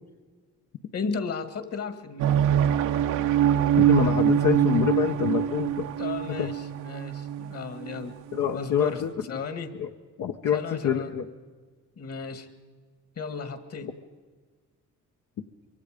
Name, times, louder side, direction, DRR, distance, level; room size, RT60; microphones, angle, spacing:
voice 1, 0.9-2.4 6.0-8.2 8.5-9.8 10.5-11.1 12.0-12.5 13.2-14.0, left 5 dB, 50° left, 10 dB, 2.1 m, -35 dB
sound 1, 2.2-8.5, right 10 dB, 85° right, 1.1 m, -24 dB
voice 2, 3.8-5.9 6.4-6.5 8.3-9.1 9.8-9.9 10.2-11.3, left 8 dB, 75° left, 3 dB, 1.2 m, -26 dB
24.5 x 23.5 x 5.2 m, 1.4 s
cardioid pair, 90°, 30 cm